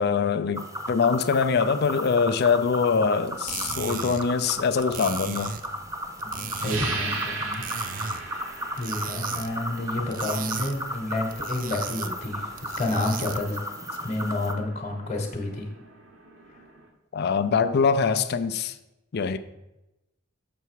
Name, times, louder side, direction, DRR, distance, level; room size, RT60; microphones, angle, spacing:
voice 1, 0.0-5.5 17.1-18.7 19.1-19.4, left 5 dB, 55° left, 0.4 m, -23 dB
sound 1, 0.6-14.5, equal, 15° right, 0.7 m, -35 dB
sound 2, 3.3-13.6, right 7 dB, 45° right, 0.4 m, -38 dB
voice 2, 6.2-7.7 8.1-8.4 8.7-13.6 14.0-15.7, left 2 dB, 35° left, 1.1 m, -30 dB
sound 3, 6.6-16.9, right 3 dB, 85° right, 1.2 m, -39 dB
6.8 x 6.0 x 4.6 m
head